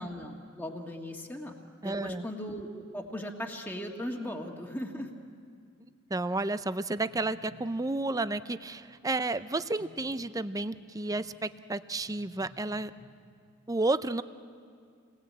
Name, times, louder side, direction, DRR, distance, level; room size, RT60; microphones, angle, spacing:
voice 1, 0.0-1.5 1.8-5.1, equal, 10° left, 0 dB, 1.7 m, -38 dB
voice 2, 1.8-2.2 6.1-12.9 13.7-14.2, right 2 dB, 15° right, 13 dB, 0.5 m, -31 dB
sound 1, 6.6-13.0, equal, 85° right, 2.9 m, -56 dB
28.0 x 20.0 x 8.6 m, 2.2 s
head